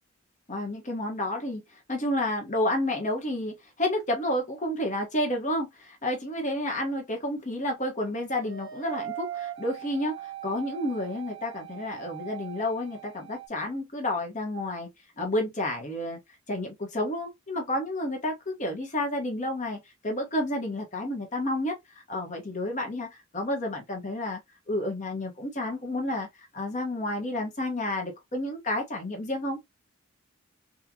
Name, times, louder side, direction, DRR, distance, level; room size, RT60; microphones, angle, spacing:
voice 1, 0.5-1.6 1.9-14.9 15.2-16.2 16.5-21.7 22.1-24.4 24.7-29.6, left 1 dB, 35° left, 1.3 m, -30 dB
sound 1, 8.4-13.5, right 11 dB, 55° right, 0.9 m, -40 dB
3.8 x 2.5 x 2.8 m
head